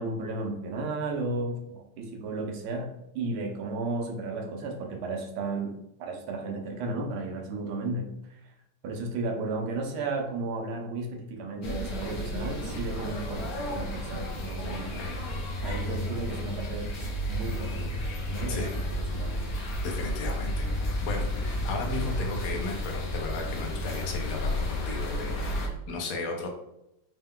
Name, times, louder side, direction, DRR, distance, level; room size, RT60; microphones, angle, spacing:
voice 1, 0.0-8.5 8.8-15.0 15.6-19.4, right 2 dB, 75° right, 3 dB, 1.5 m, -34 dB
sound 1, 11.6-25.7, left 1 dB, 60° left, 1.0 m, -32 dB
voice 2, 19.8-20.7 21.0-26.5, left 3 dB, 75° left, 2 dB, 1.6 m, -35 dB
4.4 x 2.2 x 3.5 m, 0.83 s
omnidirectional pair, 2.4 m